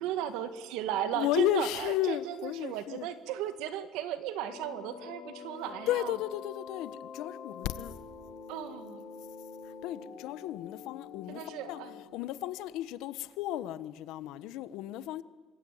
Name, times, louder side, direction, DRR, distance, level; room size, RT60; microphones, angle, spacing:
voice 1, 0.0-6.1 8.5-9.0 11.3-11.9, right 10 dB, 90° right, 2.2 m, -35 dB
voice 2, 1.1-3.1 5.9-7.9 9.6-15.2, left 13 dB, 75° left, 1.2 m, -34 dB
sound 1, 4.4-12.0, left 6 dB, 55° left, 7.4 m, -46 dB
26.0 x 21.5 x 9.5 m
cardioid pair, 150°, 0 cm